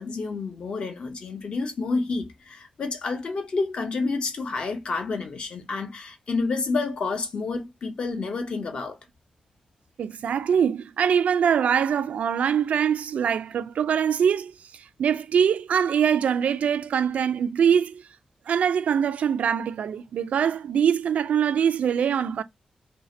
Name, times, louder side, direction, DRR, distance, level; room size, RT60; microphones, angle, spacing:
voice 1, 0.0-9.0, left 3 dB, 50° left, 0.8 m, -29 dB
voice 2, 10.0-18.0 18.5-22.4, right 8 dB, 85° right, 0.3 m, -23 dB
2.8 x 2.7 x 4.1 m
wide cardioid pair, 175°, 2 cm